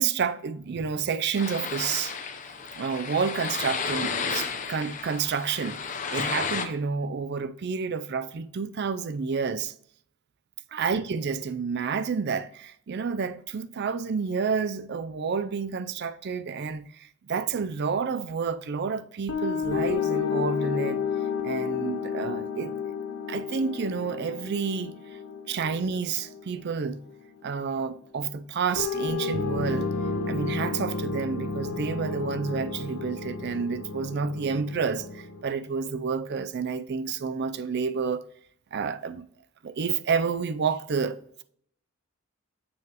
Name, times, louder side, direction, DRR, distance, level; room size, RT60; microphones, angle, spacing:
voice 1, 0.0-2.2 2.7-9.7 10.7-21.0 21.4-22.7 23.3-25.2 25.5-27.0 27.4-29.9 30.3-38.2 38.7-39.2 39.6-41.4, right 5 dB, 50° right, 0.4 m, -29 dB
sound 1, 1.4-6.7, left 5 dB, 35° left, 0.6 m, -32 dB
sound 2, 19.3-27.4 28.7-35.4, left 5 dB, 70° left, 0.7 m, -31 dB
7.1 x 6.2 x 2.9 m
head